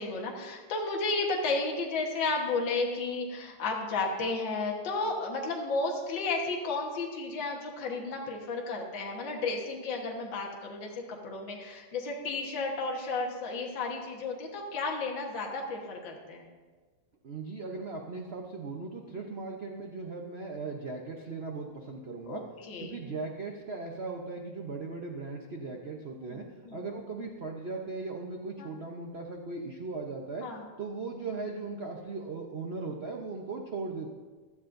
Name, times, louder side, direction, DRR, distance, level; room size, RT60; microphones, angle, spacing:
voice 1, 0.0-10.9 11.2-16.5 22.3-22.4 22.7-23.0 26.2-26.8 28.6-28.7 30.4-30.6, left 3 dB, 60° left, 0 dB, 1.9 m, -33 dB
voice 2, 17.2-22.4 22.8-30.5 30.8-34.1, right 3 dB, 85° right, 1 dB, 0.5 m, -38 dB
15.5 x 12.5 x 2.6 m, 1.4 s
omnidirectional pair, 2.4 m